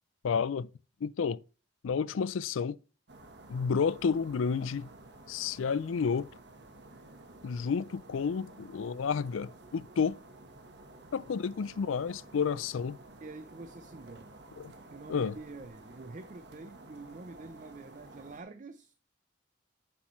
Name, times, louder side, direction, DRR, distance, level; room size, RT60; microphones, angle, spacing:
voice 1, 0.2-0.7 1.0-1.4 1.8-2.8 3.5-4.9 5.3-6.3 7.4-10.2 11.1-13.0 14.6-14.7 15.1-15.3, left 6 dB, 90° left, 0.4 m, -31 dB
sound 1, 3.1-18.4, right 2 dB, 60° right, 1.3 m, -53 dB
voice 2, 10.6-11.6 13.0-14.4 14.9-18.9, right 3 dB, 40° right, 0.5 m, -49 dB
9.4 x 7.2 x 3.1 m
head